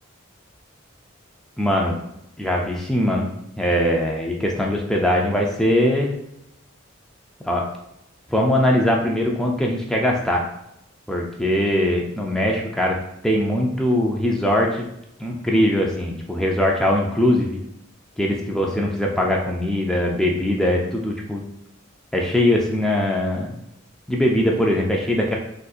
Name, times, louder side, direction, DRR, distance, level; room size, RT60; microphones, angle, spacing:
voice 1, 1.6-2.0 2.4-3.3 3.6-6.2 7.4-7.6 8.3-10.5 11.1-13.0 13.2-14.8 15.2-17.6 18.2-21.4 22.1-23.6 24.1-25.3, left 1 dB, 5° left, -1 dB, 0.3 m, -21 dB
3.7 x 2.6 x 2.3 m, 0.81 s
head